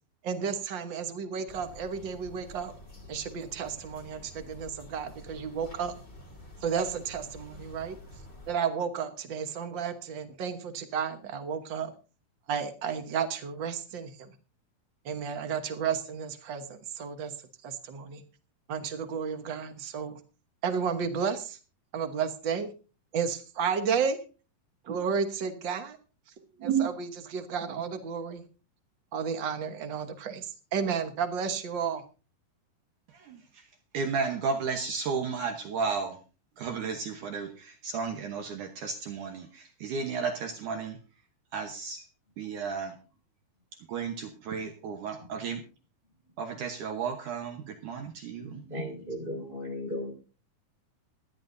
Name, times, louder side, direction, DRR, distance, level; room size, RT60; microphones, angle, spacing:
voice 1, 0.2-2.7 3.1-5.9 6.6-8.0 8.5-11.9 12.5-14.1 15.0-17.3 17.6-18.2 18.7-20.2 20.6-21.6 21.9-22.7 23.1-24.2 24.9-26.0 26.6-28.4 29.1-32.0, right 6 dB, 85° right, 7 dB, 1.0 m, -32 dB
sound 1, 1.5-8.5, left 1 dB, 15° left, 3.0 m, -49 dB
voice 2, 33.9-36.2 36.6-41.0 41.5-42.0 42.4-42.9 43.9-45.6 46.4-48.6, right 5 dB, 70° right, 5 dB, 2.4 m, -33 dB
voice 3, 48.4-50.1, left 1 dB, 15° right, 2 dB, 4.9 m, -36 dB
26.5 x 10.5 x 2.7 m, 0.35 s
omnidirectional pair, 4.0 m